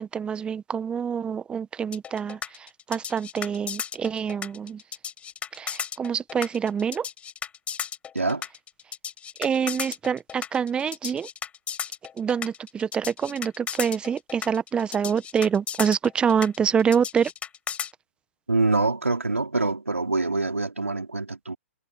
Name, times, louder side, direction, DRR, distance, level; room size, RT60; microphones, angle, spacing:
voice 1, 0.0-4.8 5.5-7.1 9.4-11.3 12.2-17.3, right 7 dB, 15° right, 1.2 m, -26 dB
sound 1, 1.9-17.9, left 8 dB, 15° left, 5.7 m, -34 dB
voice 2, 8.1-8.5 18.5-21.6, right 3 dB, 85° right, 5.0 m, -25 dB
figure-of-eight pair, 115°, 7 cm